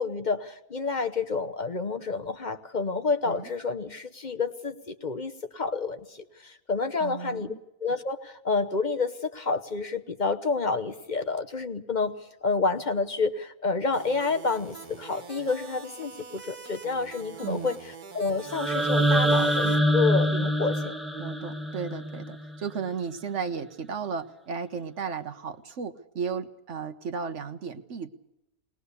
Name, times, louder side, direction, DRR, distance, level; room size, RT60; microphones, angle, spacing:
voice 1, 0.0-7.5 7.8-17.8 18.1-20.9, left 4 dB, 35° left, 7 dB, 0.9 m, -29 dB
voice 2, 7.0-7.6 17.4-17.8 21.2-28.1, right 6 dB, 55° right, 9 dB, 1.3 m, -34 dB
sound 1, 13.9-19.8, right 5 dB, 85° right, 2.1 m, -44 dB
sound 2, 18.5-22.5, equal, ahead, 1.1 m, -25 dB
21.5 x 20.0 x 6.8 m, 0.92 s
omnidirectional pair, 1.6 m